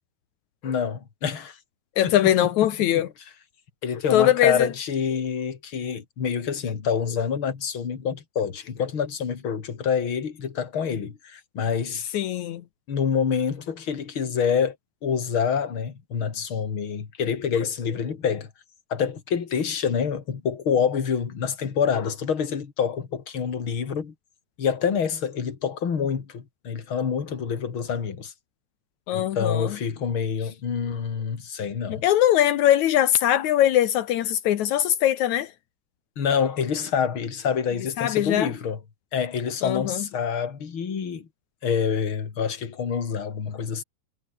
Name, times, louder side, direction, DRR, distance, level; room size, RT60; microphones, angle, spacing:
voice 1, 0.6-1.6 2.0-2.1 2.4-2.5 3.8-12.1 12.9-14.8 15.0-18.5 18.9-24.1 24.6-28.3 29.1-32.0 36.2-38.8 39.1-41.3 41.6-43.8, left 7 dB, 35° left, 2.6 m, -27 dB
voice 2, 2.0-3.1 4.1-4.7 12.1-12.6 29.1-29.8 31.9-35.5 38.0-38.5 39.6-40.1, left 12 dB, 80° left, 1.7 m, -21 dB
omnidirectional pair, 5.1 m